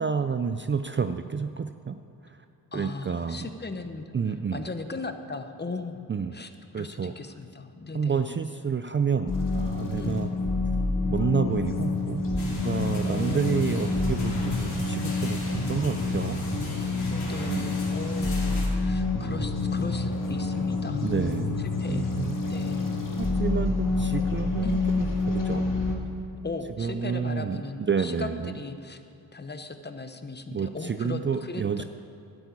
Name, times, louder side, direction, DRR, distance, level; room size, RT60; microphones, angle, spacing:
voice 1, 0.0-2.0 2.2-2.4 2.7-3.5 4.1-4.6 6.1-6.3 6.7-7.1 7.9-10.3 11.1-16.4 17.4-17.7 21.0-22.4 23.2-25.7 26.8-28.6 30.5-31.8, right 6 dB, 30° right, 9 dB, 0.4 m, -29 dB
voice 2, 2.7-4.1 4.5-6.1 6.3-8.2 10.0-10.3 12.8-13.4 13.7-14.0 17.1-21.1 21.8-22.1 22.5-22.9 24.6-24.8 26.4-29.0 29.3-31.8, left 3 dB, 25° left, 8 dB, 0.9 m, -38 dB
sound 1, 9.3-26.0, left 3 dB, 55° left, 2.0 m, -28 dB
sound 2, 12.4-18.7, left 2 dB, 75° left, 2.9 m, -40 dB
12.0 x 7.9 x 8.5 m, 2.6 s
cardioid pair, 75°, 39 cm